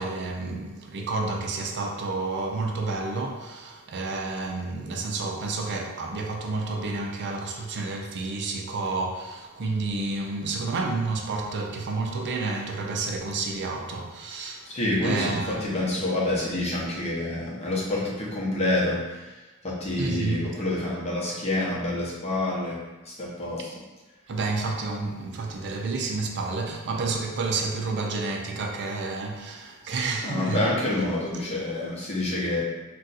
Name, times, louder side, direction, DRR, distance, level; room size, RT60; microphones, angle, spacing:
voice 1, 0.0-14.7 15.0-16.1 20.0-20.5 24.3-30.7, right 3 dB, 50° right, 0.4 m, -30 dB
voice 2, 14.7-22.8 23.0-23.8 30.2-32.6, left 1 dB, 30° left, 0.8 m, -28 dB
2.5 x 2.3 x 3.9 m
head